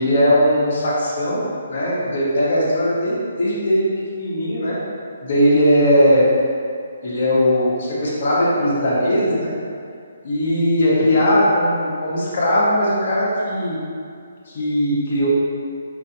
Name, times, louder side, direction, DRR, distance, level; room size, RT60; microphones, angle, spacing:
voice 1, 0.0-3.9 4.1-4.8 5.2-6.3 7.0-9.5 10.2-13.8 14.5-15.3, equal, 55° left, -6 dB, 1.2 m, -19 dB
5.2 x 2.7 x 2.8 m, 2.3 s
hypercardioid pair, 155°, 0 cm